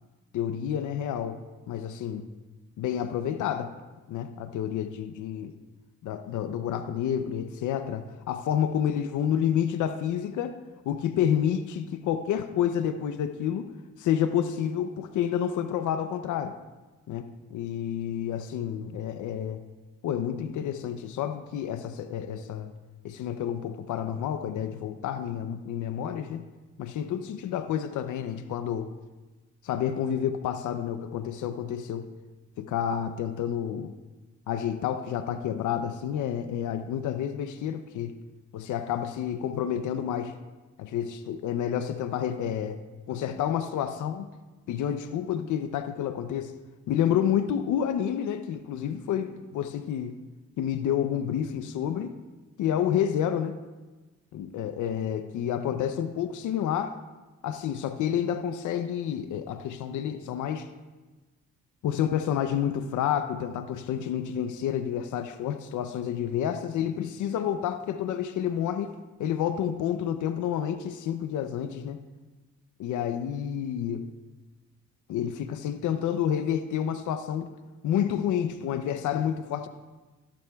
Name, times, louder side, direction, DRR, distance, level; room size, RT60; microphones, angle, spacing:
voice 1, 0.3-2.3 2.8-3.7 4.1-5.5 6.0-10.6 10.9-13.7 14.0-16.6 17.1-19.6 20.0-22.7 23.0-26.4 26.8-28.9 29.6-32.1 32.6-33.9 34.5-38.2 38.5-40.3 40.8-42.8 43.1-44.3 44.7-46.5 46.9-50.2 50.6-52.1 52.6-53.6 54.3-57.0 57.4-60.7 61.8-68.9 69.2-72.0 72.8-74.1 75.1-77.5 77.8-79.7, left 9 dB, 75° left, 10 dB, 0.6 m, -29 dB
15.5 x 11.5 x 2.3 m, 1.2 s
cardioid pair, 90°, 30 cm